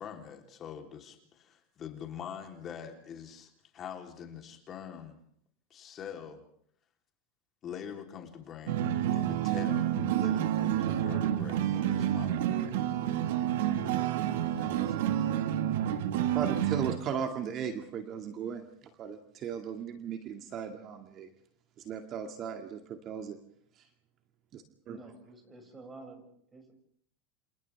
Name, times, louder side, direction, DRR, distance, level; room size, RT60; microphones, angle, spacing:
voice 1, 0.0-5.2 5.7-6.4 7.6-8.8 9.1-12.7 14.5-15.1, left 8 dB, 35° left, 3 dB, 3.6 m, -44 dB
sound 1, 8.7-17.0, right 11 dB, 75° right, 1.7 m, -29 dB
voice 2, 16.2-18.6 19.0-21.3 21.8-23.4 23.8-23.9 24.5-25.0, right 7 dB, 40° right, 5 dB, 2.2 m, -37 dB
voice 3, 24.9-26.7, right 2 dB, 20° right, 4 dB, 6.6 m, -50 dB
28.5 x 28.0 x 3.5 m, 0.65 s
supercardioid pair, 115°, 0 cm